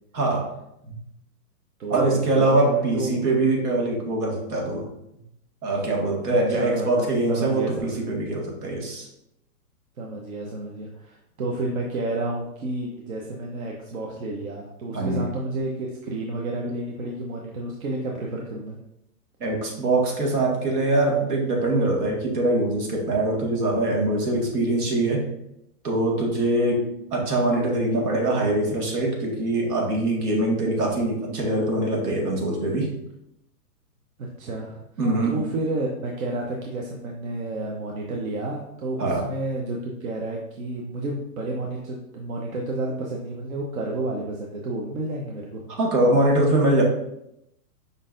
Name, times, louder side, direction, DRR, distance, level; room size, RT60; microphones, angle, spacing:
voice 1, 0.1-0.5 0.9-1.0 1.9-4.8 5.6-9.1 14.9-15.3 19.4-25.2 25.8-32.9 35.0-35.4 39.0-39.3 45.8-46.8, right 2 dB, 75° right, -1 dB, 1.7 m, -23 dB
voice 2, 1.8-3.2 6.3-8.1 10.0-18.8 34.2-45.6, right 2 dB, 60° right, -1 dB, 0.8 m, -31 dB
5.3 x 3.8 x 2.5 m, 0.82 s
hypercardioid pair, 170°, 46 cm